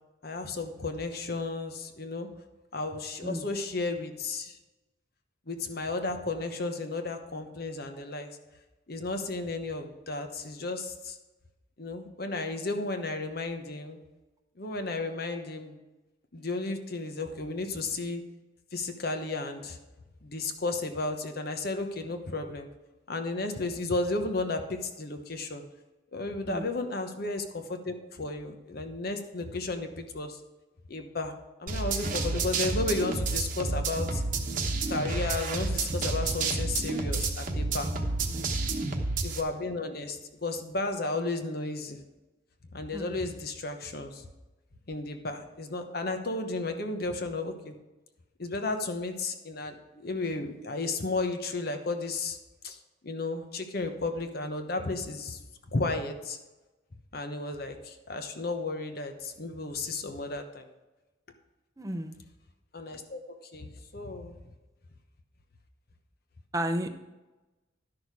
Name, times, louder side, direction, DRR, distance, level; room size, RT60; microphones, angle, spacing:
voice 1, 0.2-2.3 2.7-4.6 5.5-8.3 8.9-11.2 11.8-14.0 14.6-15.8 16.3-18.2 18.7-19.8 20.2-22.7 23.1-25.6 26.1-30.4 30.9-31.3 31.6-34.2 34.9-37.9 39.2-42.0 42.7-44.2 44.9-47.7 48.4-52.4 52.6-52.8 53.0-55.4 55.7-56.4 57.1-60.6 62.7-64.3, left 3 dB, 50° left, 6 dB, 1.0 m, -33 dB
sound 1, 31.7-39.4, right 3 dB, 45° right, 1.1 m, -30 dB
voice 2, 61.8-62.2 66.5-66.9, equal, 15° right, 6 dB, 0.7 m, -33 dB
11.5 x 6.3 x 4.8 m, 1.1 s
head